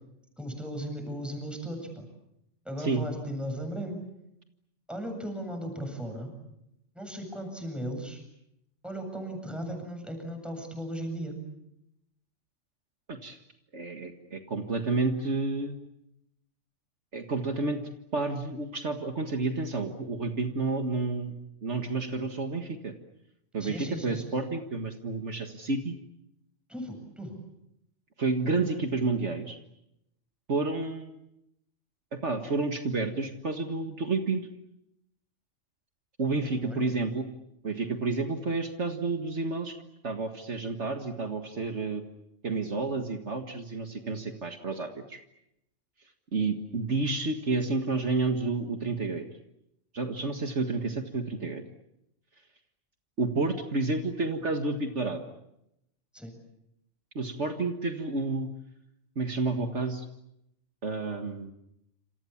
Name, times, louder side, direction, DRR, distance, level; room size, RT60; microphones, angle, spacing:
voice 1, 0.4-2.1 2.6-4.0 4.9-6.3 6.9-8.2 8.8-11.4 23.6-24.2 26.7-27.4 36.6-36.8 56.1-56.3, equal, ahead, 4 dB, 7.8 m, -36 dB
voice 2, 13.1-13.4 13.7-15.8 17.1-17.8 18.1-21.3 21.6-22.9 23.5-25.9 28.2-29.6 30.5-31.2 32.1-34.4 36.2-37.3 37.6-39.8 40.0-42.0 42.4-45.2 46.3-49.3 49.9-51.6 53.2-55.2 57.2-58.5 59.2-60.1 60.8-61.5, right 3 dB, 60° right, 5 dB, 2.0 m, -30 dB
28.0 x 28.0 x 7.3 m, 0.82 s
omnidirectional pair, 1.3 m